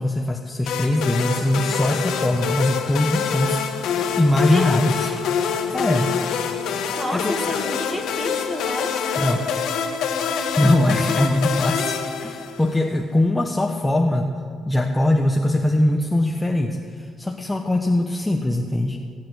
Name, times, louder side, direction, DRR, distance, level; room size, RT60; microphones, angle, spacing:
voice 1, 0.0-3.6 4.2-5.1 5.7-6.1 7.1-7.3 9.2-9.5 10.6-14.3 14.7-19.0, left 1 dB, 15° left, 2 dB, 1.1 m, -21 dB
sound 1, 0.7-12.8, left 7 dB, 85° left, 1.5 m, -25 dB
voice 2, 6.9-9.0 9.6-9.7, left 1 dB, 10° right, 2 dB, 2.5 m, -30 dB
17.0 x 8.6 x 8.0 m, 2.1 s
cardioid pair, 90°, 0 cm